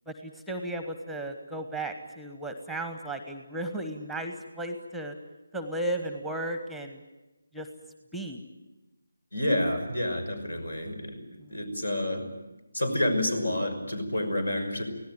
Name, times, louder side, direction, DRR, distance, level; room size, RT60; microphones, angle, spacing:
voice 1, 0.1-5.1 5.5-7.0 7.5-7.7 8.1-8.4 11.4-11.5, right 1 dB, ahead, 7 dB, 1.1 m, -35 dB
voice 2, 9.3-11.2 11.5-12.3 12.7-14.8, left 1 dB, 75° left, 8 dB, 5.8 m, -29 dB
25.0 x 17.5 x 9.2 m, 1.1 s
figure-of-eight pair, 155°, 0 cm